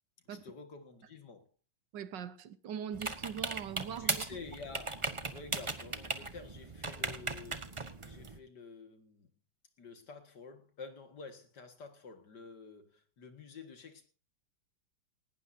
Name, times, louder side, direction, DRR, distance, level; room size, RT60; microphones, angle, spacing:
voice 1, 0.3-1.5 4.0-9.3 9.8-14.1, left 4 dB, 60° left, 2.4 m, -50 dB
voice 2, 1.9-4.2, right 8 dB, 70° right, 1.6 m, -41 dB
sound 1, 2.9-8.4, right 3 dB, 25° right, 0.8 m, -38 dB
19.0 x 18.0 x 2.7 m
omnidirectional pair, 2.1 m